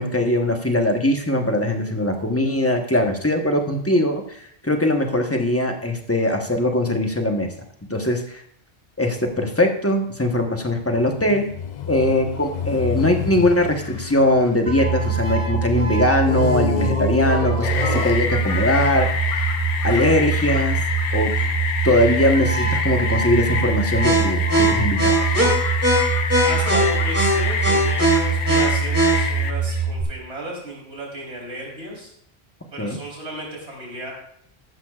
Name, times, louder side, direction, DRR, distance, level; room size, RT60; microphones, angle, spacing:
voice 1, 0.0-7.5 7.9-8.4 9.0-11.5 11.9-19.1 19.8-20.8 21.1-21.3 21.8-25.4 32.8-33.0, left 1 dB, 15° left, 3 dB, 1.0 m, -21 dB
sound 1, 10.8-15.5 16.2-18.7 19.4-19.5, left 7 dB, 50° left, 0.6 m, -29 dB
sound 2, 14.7-30.0, right 3 dB, 15° right, 2.8 m, -22 dB
sound 3, 17.6-29.5, left 6 dB, 80° left, 1.1 m, -27 dB
voice 2, 26.4-32.1 32.7-34.1, right 1 dB, 90° right, -3 dB, 4.2 m, -33 dB
14.5 x 11.5 x 2.4 m, 0.67 s
omnidirectional pair, 1.1 m